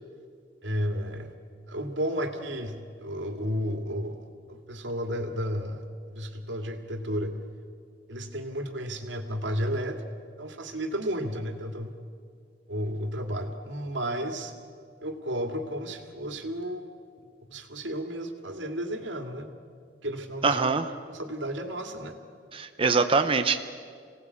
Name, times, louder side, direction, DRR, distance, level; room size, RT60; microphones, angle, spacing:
voice 1, 0.6-1.3 1.7-5.8 6.1-7.3 8.1-10.0 10.4-11.9 12.7-14.5 15.0-16.9 17.4-19.5 20.0-20.6 21.1-22.2, equal, 90° right, 6 dB, 2.2 m, -32 dB
voice 2, 20.4-20.8 22.5-23.6, right 4 dB, 30° right, 7 dB, 0.7 m, -23 dB
26.5 x 18.0 x 8.4 m, 2.2 s
head